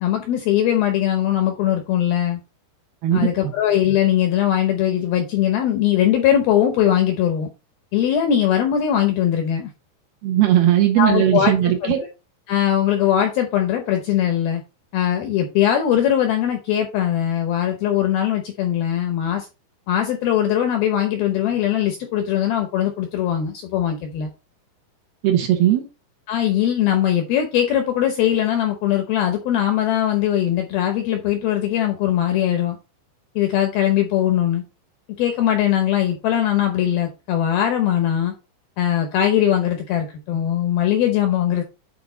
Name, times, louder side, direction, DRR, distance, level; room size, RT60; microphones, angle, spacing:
voice 1, 0.0-2.4 3.1-7.5 7.9-9.7 11.0-11.9 12.5-14.6 14.9-19.5 19.9-24.3 26.3-32.8 33.4-34.6 35.2-38.3 38.8-41.6, left 11 dB, 75° left, 2.3 m, -20 dB
voice 2, 3.0-3.5 10.2-12.0 25.2-25.9, right 12 dB, 70° right, 2.6 m, -18 dB
8.5 x 4.8 x 3.9 m
omnidirectional pair, 5.4 m